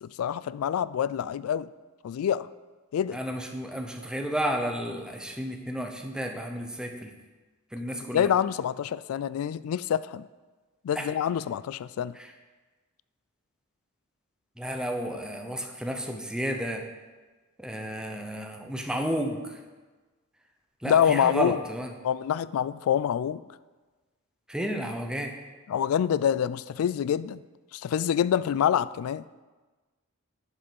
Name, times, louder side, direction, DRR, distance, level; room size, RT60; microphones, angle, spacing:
voice 1, 0.0-1.7 2.0-2.5 2.9-3.2 8.1-10.2 10.8-12.1 20.8-21.6 22.0-23.4 25.7-27.4 27.7-29.2, left 9 dB, 75° left, 17 dB, 0.3 m, -26 dB
voice 2, 3.1-7.1 7.7-8.3 11.0-11.1 14.6-16.8 17.6-19.4 20.8-21.9 24.5-25.3, equal, 5° right, 3 dB, 0.8 m, -32 dB
11.0 x 5.5 x 5.3 m, 1.3 s
head